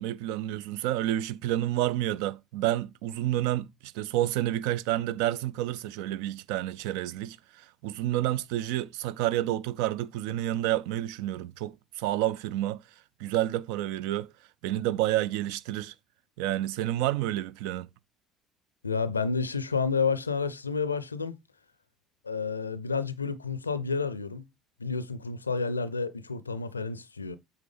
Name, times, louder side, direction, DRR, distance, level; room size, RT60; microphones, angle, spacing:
voice 1, 0.0-12.8 13.2-14.3 14.6-15.9 16.4-17.9, right 14 dB, 65° right, 0.3 m, -29 dB
voice 2, 18.8-21.4 22.2-24.4 24.8-27.4, left 5 dB, 90° left, 0.4 m, -30 dB
8.3 x 3.5 x 3.4 m
figure-of-eight pair, 55°, 0 cm